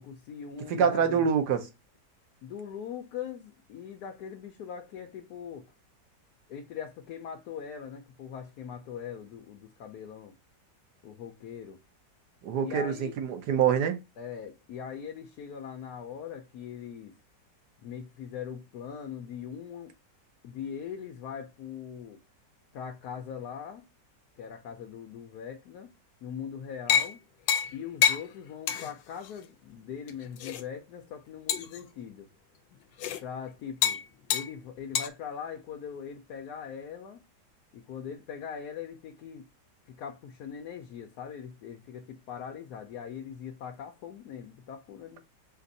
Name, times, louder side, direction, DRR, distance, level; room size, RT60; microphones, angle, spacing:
voice 1, 0.0-1.3 2.4-5.6 6.5-10.3 11.0-11.8 12.6-13.2 14.2-17.2 17.8-19.9 20.4-22.2 22.7-23.8 24.4-25.9 26.2-27.2 27.7-32.3 33.2-34.0 34.3-37.2 37.7-39.5 39.9-45.2, left 7 dB, 70° left, 1.1 m, -41 dB
voice 2, 0.7-1.7 12.4-14.0, right 7 dB, 70° right, 1.3 m, -25 dB
sound 1, 26.9-27.1 27.5-27.7 28.0-28.2 28.7-28.9 29.2-29.3 30.1-30.6 31.5-31.8 33.0-33.2 33.8-34.0 34.3-34.5 35.0-35.1, left 8 dB, 90° left, 1.3 m, -26 dB
5.2 x 2.5 x 4.0 m
omnidirectional pair, 1.9 m